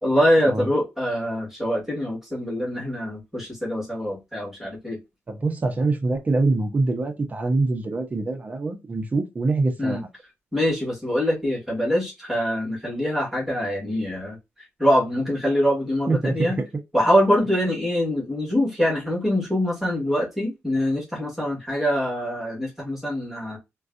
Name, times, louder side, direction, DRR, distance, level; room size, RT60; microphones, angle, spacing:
voice 1, 0.0-5.0 9.8-10.0 10.5-14.4 14.8-16.6 16.9-23.6, equal, 5° right, 1.7 m, -24 dB
voice 2, 5.3-10.0 16.1-16.7, right 3 dB, 30° right, 0.8 m, -24 dB
3.8 x 2.3 x 2.5 m
wide cardioid pair, 130°, 5 cm